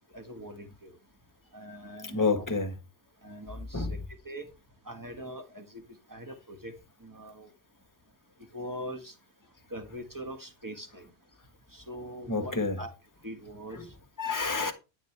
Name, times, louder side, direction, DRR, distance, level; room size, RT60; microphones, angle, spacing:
voice 1, 0.1-1.0 1.5-2.4 3.2-4.0 4.2-4.5 4.8-5.8 6.1-6.7 7.0-7.5 8.5-9.1 9.7-11.1 11.7-12.9 13.2-13.8, equal, 15° right, 1.6 m, -42 dB
voice 2, 2.0-2.7 3.7-4.0 12.3-12.8 13.7-13.9 14.2-14.7, left 4 dB, 15° left, 1.5 m, -29 dB
13.0 x 7.8 x 3.4 m
omnidirectional pair, 1.1 m